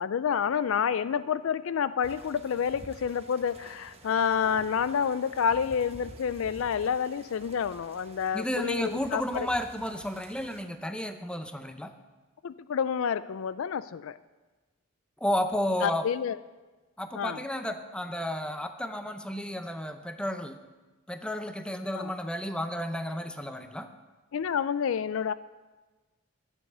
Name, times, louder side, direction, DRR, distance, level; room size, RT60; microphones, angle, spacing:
voice 1, 0.0-9.5 12.4-14.2 15.8-16.4 17.1-17.4 21.9-22.1 24.3-25.3, left 7 dB, 70° left, 15 dB, 0.4 m, -29 dB
sound 1, 2.0-10.6, right 2 dB, 30° right, 1.2 m, -50 dB
voice 2, 8.3-11.9 15.2-16.0 17.0-20.6 21.1-23.9, equal, 5° left, 8 dB, 0.7 m, -32 dB
12.5 x 9.8 x 6.7 m, 1.2 s
head